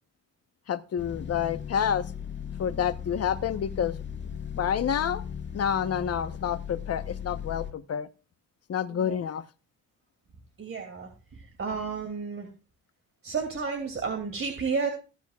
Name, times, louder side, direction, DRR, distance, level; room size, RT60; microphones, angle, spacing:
voice 1, 0.7-2.1 2.6-4.0 4.5-5.2 5.5-8.1 8.7-9.4, left 8 dB, 55° left, 1.1 m, -28 dB
sound 1, 1.0-7.7, left 8 dB, 40° left, 1.7 m, -37 dB
voice 2, 10.6-11.1 11.6-12.5 13.2-14.9, right 5 dB, 45° right, 2.9 m, -31 dB
19.5 x 9.0 x 2.5 m
cardioid pair, 90°, 30 cm